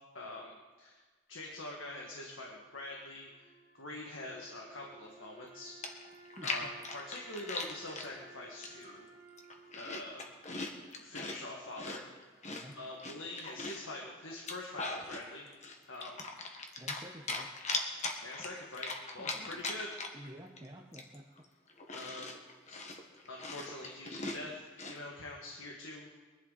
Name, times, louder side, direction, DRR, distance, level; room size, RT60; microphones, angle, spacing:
voice 1, 0.1-0.5 0.8-1.0 1.3-5.7 6.4-9.1 9.7-10.3 11.0-12.0 12.8-15.5 15.9-16.5 18.2-19.9 21.9-22.4 22.7-22.8 23.3-26.1, left 2 dB, 80° left, -1 dB, 1.9 m, -45 dB
Wind instrument woodwind instrument, 2.5-11.6, right 3 dB, 55° right, 3.1 m, -58 dB
Chewing mastication, 5.4-5.5 5.8-8.1 8.6-9.0 9.3-11.4 11.8-13.9 14.3-15.2 15.6-17.0 17.3-20.3 20.6-20.7 20.9-25.0, left 3 dB, 35° left, 1.5 m, -40 dB
voice 2, 6.4-6.7 12.5-12.8 16.8-17.5 19.2-19.6 20.1-21.3, equal, 20° right, -2 dB, 1.0 m, -50 dB
23.0 x 11.0 x 4.2 m, 1.4 s
head